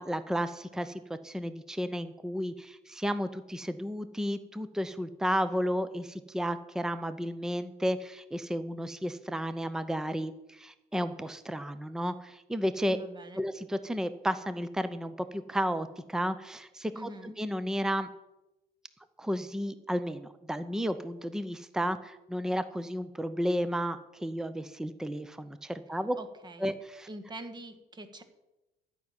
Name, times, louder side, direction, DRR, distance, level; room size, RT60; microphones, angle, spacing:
voice 1, 0.0-13.0 13.4-18.1 19.2-26.2 26.6-27.1, equal, 5° right, 12 dB, 0.7 m, -33 dB
voice 2, 12.9-13.4 16.9-17.4 26.1-26.7 27.1-28.2, right 1 dB, 25° right, 9 dB, 1.5 m, -44 dB
12.0 x 6.0 x 9.0 m, 0.97 s
cardioid pair, 110°, 17 cm